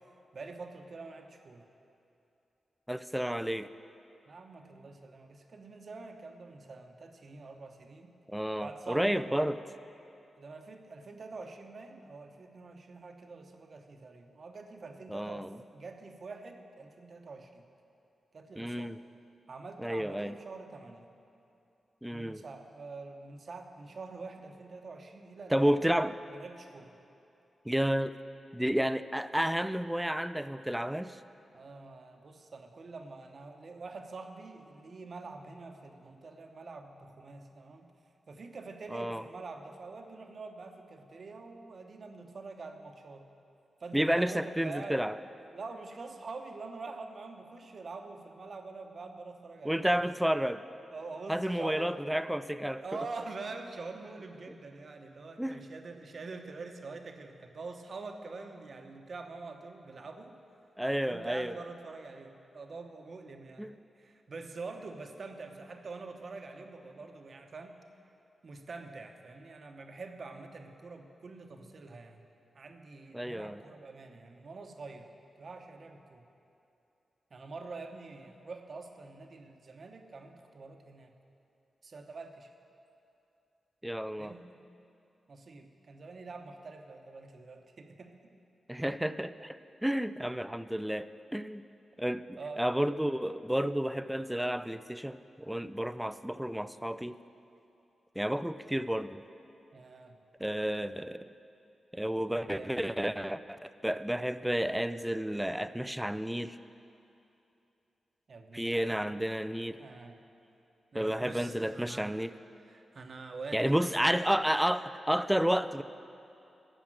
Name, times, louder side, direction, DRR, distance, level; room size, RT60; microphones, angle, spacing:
voice 1, 0.0-1.7 4.3-8.1 8.6-9.5 10.4-15.5 15.7-17.6 18.3-18.9 19.5-21.1 22.1-25.8 26.3-26.9 31.5-37.9 38.3-43.3 43.8-45.0 45.4-50.0 50.9-52.0 52.8-60.4 61.0-63.7 64.0-67.8 68.4-72.3 72.5-75.1 75.4-76.3 77.3-81.1 81.8-82.5 84.2-84.6 85.3-88.2 92.3-92.7 99.7-100.2 102.4-102.9 108.3-109.1 109.8-110.2 110.9-112.2 112.6-114.1, right 3 dB, 60° right, 5 dB, 0.9 m, -45 dB
voice 2, 2.9-3.7 8.3-9.6 15.1-15.6 18.6-19.0 19.8-20.3 22.0-22.4 25.5-26.1 27.7-28.1 28.5-31.2 38.9-39.2 43.9-45.1 49.6-50.6 51.3-52.8 55.4-55.6 60.8-61.5 63.6-63.7 73.1-73.6 83.8-84.3 88.7-91.6 92.0-97.1 98.2-99.2 100.4-101.3 101.9-106.6 108.5-109.8 110.9-112.3 113.5-115.8, equal, 5° right, 13 dB, 0.4 m, -31 dB
13.5 x 5.0 x 7.6 m, 2.8 s
cardioid pair, 55°, 0 cm